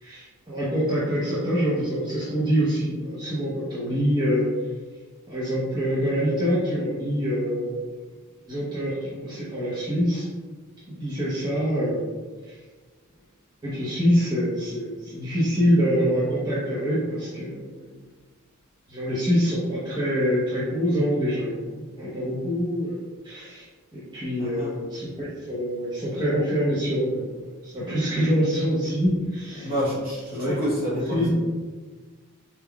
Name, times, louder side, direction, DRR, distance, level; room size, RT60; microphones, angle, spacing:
voice 1, 0.0-4.5 5.3-7.9 8.5-10.2 10.9-12.1 12.4-12.6 13.6-18.0 18.9-23.6 23.9-29.7 30.3-30.5 31.1-31.3, equal, 20° right, -9 dB, 0.8 m, -25 dB
voice 2, 24.4-24.7 29.6-31.3, equal, 45° right, -7 dB, 1.4 m, -28 dB
4.4 x 3.6 x 2.3 m, 1.4 s
head